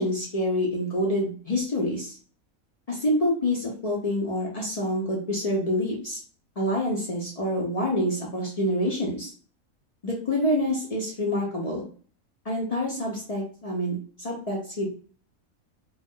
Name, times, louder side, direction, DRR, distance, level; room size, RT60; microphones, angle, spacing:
voice 1, 0.0-2.2 2.9-6.2 6.6-9.3 10.0-11.9 12.4-14.9, left 1 dB, 60° left, -2 dB, 0.4 m, -27 dB
2.4 x 2.2 x 3.5 m, 0.42 s
omnidirectional pair, 1.5 m